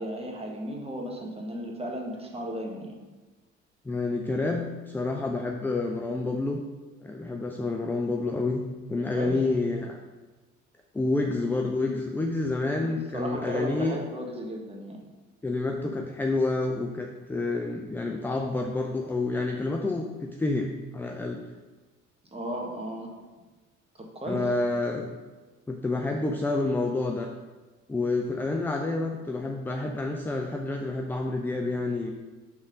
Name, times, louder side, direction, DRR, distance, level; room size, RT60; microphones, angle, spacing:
voice 1, 0.0-3.0 9.1-9.4 12.8-15.0 22.3-23.1 24.1-24.5, right 1 dB, 15° right, 0 dB, 1.3 m, -35 dB
voice 2, 3.8-6.6 7.0-8.6 8.9-10.0 10.9-14.0 15.4-21.4 24.3-25.1 25.7-27.3 27.9-32.1, left 2 dB, 5° left, 2 dB, 0.3 m, -28 dB
5.9 x 3.8 x 4.9 m, 1.2 s
figure-of-eight pair, 50°, 37 cm